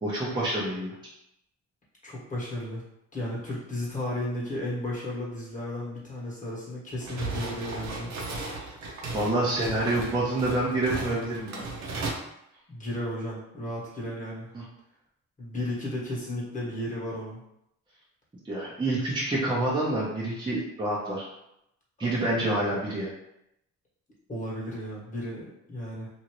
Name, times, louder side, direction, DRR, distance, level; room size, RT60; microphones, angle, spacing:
voice 1, 0.0-0.9 9.1-11.7 14.5-14.6 18.5-21.3 22.0-23.1, right 1 dB, 15° right, -6 dB, 0.8 m, -27 dB
voice 2, 2.0-2.8 3.1-8.1 12.7-14.5 15.4-17.4 22.0-22.4 24.3-26.1, left 1 dB, 25° left, -4 dB, 1.4 m, -34 dB
sound 1, 7.0-12.1, right 3 dB, 65° right, 0.8 m, -36 dB
2.8 x 2.7 x 3.0 m, 0.82 s
cardioid pair, 90°, 30 cm